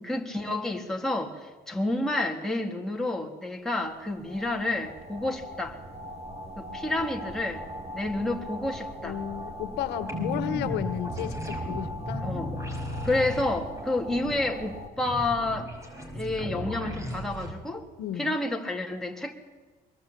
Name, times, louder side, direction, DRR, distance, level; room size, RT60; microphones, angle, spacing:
voice 1, 0.0-5.8 6.6-7.6 7.9-9.2 12.2-12.5 13.0-15.7 16.1-17.8 18.2-19.3, left 2 dB, 5° left, 0 dB, 3.5 m, -29 dB
sound 1, 3.8-14.9, equal, 40° right, 2.6 m, -40 dB
voice 2, 9.0-12.3 18.0-18.4, left 11 dB, 85° left, 11 dB, 1.7 m, -33 dB
sound 2, 10.1-17.5, equal, 15° right, 5.4 m, -35 dB
24.0 x 21.5 x 8.7 m, 1.3 s
cardioid pair, 110°, 17 cm